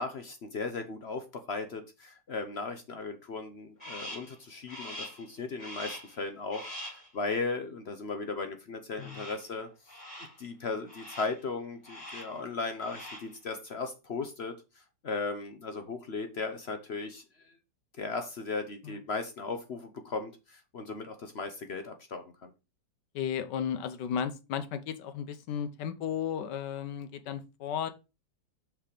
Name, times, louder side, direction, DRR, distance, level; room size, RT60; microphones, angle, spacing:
voice 1, 0.0-9.7 10.4-14.6 15.0-17.5 18.0-22.5, left 4 dB, 50° left, 0.8 m, -37 dB
Crow, 3.8-4.4 4.7-5.3 5.6-6.2 6.5-7.1 9.0-9.5 9.9-10.4 10.9-11.4 11.8-12.4 12.7-13.4, equal, 20° left, 3.8 m, -43 dB
voice 2, 23.1-27.9, left 8 dB, 90° left, 1.4 m, -34 dB
5.8 x 4.8 x 5.0 m
omnidirectional pair, 1.8 m